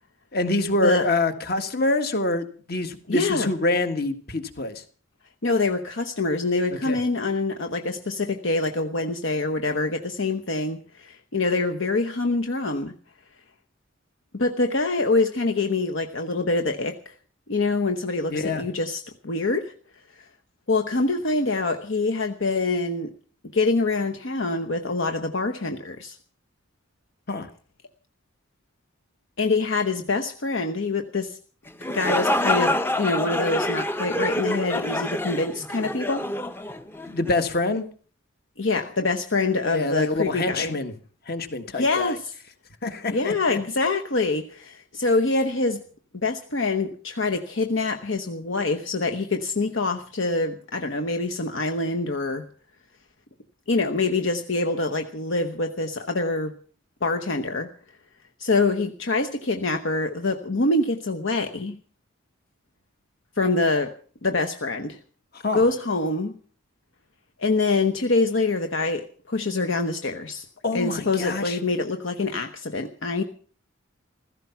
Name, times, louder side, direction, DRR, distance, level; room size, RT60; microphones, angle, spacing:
voice 1, 0.3-4.8 6.9-7.0 18.3-18.6 27.3-27.5 37.1-37.9 39.7-40.9 41.3-42.2 42.8-43.6 65.4-65.7 70.6-71.6, left 2 dB, 50° left, 8 dB, 1.7 m, -26 dB
voice 2, 3.1-3.5 5.4-12.9 14.3-17.2 17.5-19.7 20.2-20.3 20.7-23.1 23.5-26.2 29.4-31.4 31.9-36.3 38.6-40.8 41.8-42.3 43.1-45.8 46.1-52.5 53.7-56.5 57.0-57.7 58.4-61.8 63.4-63.9 64.2-65.0 65.5-66.4 67.4-70.4 70.7-73.2, left 3 dB, 65° left, 5 dB, 1.1 m, -25 dB
sound 1, 31.7-37.4, left 1 dB, 10° left, 0.7 m, -26 dB
16.0 x 14.5 x 5.8 m, 0.43 s
head